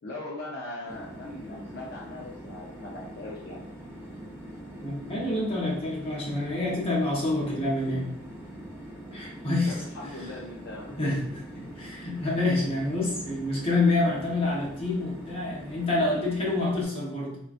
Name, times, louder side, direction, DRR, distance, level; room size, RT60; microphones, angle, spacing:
voice 1, 0.0-3.6 9.7-11.3, left 2 dB, 50° left, -3 dB, 0.4 m, -40 dB
sound 1, 0.8-16.8, right 1 dB, 10° right, 0.6 m, -43 dB
voice 2, 4.8-8.1 9.1-9.7 11.0-11.2 11.8-17.4, left 2 dB, 30° left, -4 dB, 0.8 m, -27 dB
3.7 x 2.3 x 2.4 m, 0.71 s
head